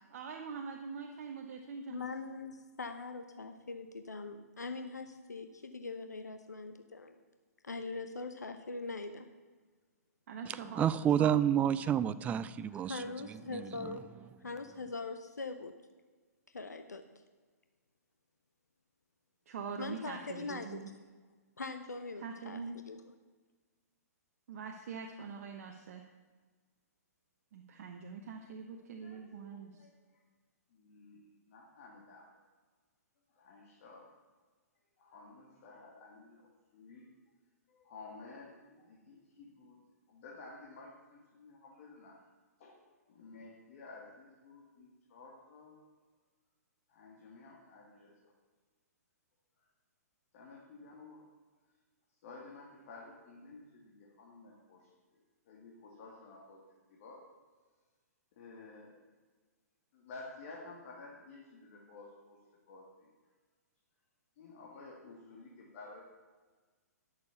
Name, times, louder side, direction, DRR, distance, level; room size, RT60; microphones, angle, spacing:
voice 1, 0.1-2.1 10.3-10.9 11.2-11.3 19.5-20.9 22.2-22.8 24.5-26.1 27.5-29.9, right 5 dB, 55° right, 1.1 m, -43 dB
voice 2, 1.9-7.2 7.6-9.3 12.7-14.1 14.4-15.7 16.5-17.0 19.8-20.9 21.6-23.0, left 3 dB, 85° left, 0.8 m, -42 dB
voice 3, 10.7-13.0 13.5-13.7, right 9 dB, 15° right, 0.4 m, -29 dB
voice 4, 29.0-29.9 30.7-32.2 33.4-34.1 35.0-36.5 36.7-37.0 37.7-39.8 40.1-42.2 42.6-42.8 43.1-45.8 46.9-48.1 50.3-51.2 52.2-54.8 55.5-56.6 56.9-57.2 58.4-58.9 59.9-62.4 62.7-62.8 64.4-66.0, left 3 dB, 50° left, 2.1 m, -52 dB
11.5 x 6.9 x 7.0 m
hypercardioid pair, 125°, 9 cm